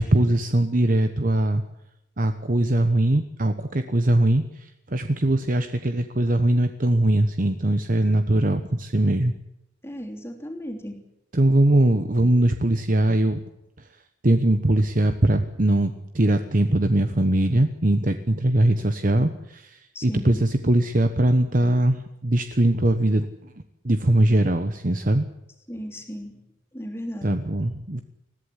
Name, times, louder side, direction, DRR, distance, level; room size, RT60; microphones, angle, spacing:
voice 1, 0.0-1.6 2.2-9.3 11.3-13.4 14.2-23.3 23.8-25.3 27.2-28.0, right 1 dB, 45° right, 8 dB, 1.1 m, -21 dB
voice 2, 9.8-11.0 19.9-20.4 25.7-26.4 26.7-27.4, equal, 15° left, 2 dB, 3.2 m, -35 dB
21.0 x 15.0 x 10.0 m, 0.88 s
head